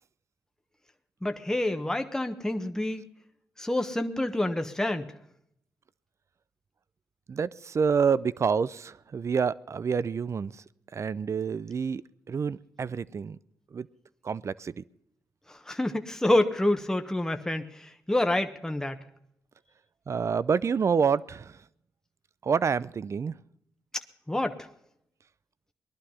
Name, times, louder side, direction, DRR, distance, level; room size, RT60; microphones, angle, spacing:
voice 1, 1.2-3.1 3.6-5.1 15.5-19.0 24.3-24.6, left 1 dB, 10° left, 7 dB, 1.2 m, -27 dB
voice 2, 7.3-10.6 10.9-13.4 13.7-13.9 14.2-14.8 20.1-21.6 22.4-23.3, right 6 dB, 45° right, 19 dB, 0.5 m, -28 dB
19.5 x 11.5 x 5.6 m, 0.77 s
cardioid pair, 60°, 7 cm